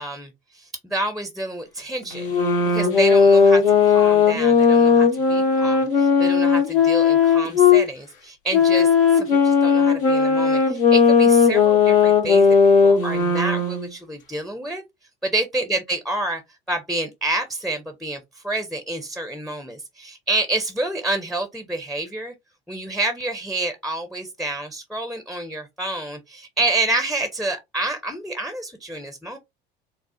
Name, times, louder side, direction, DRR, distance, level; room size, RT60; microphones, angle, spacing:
voice 1, 0.0-2.3 2.6-12.5 12.8-14.8 15.2-16.4 16.7-22.3 22.7-29.4, right 2 dB, ahead, 0.5 m, -28 dB
sound 1, 2.1-7.8 8.5-13.9, left 5 dB, 70° left, 1.0 m, -16 dB
4.1 x 2.1 x 2.5 m
figure-of-eight pair, 65°, 29 cm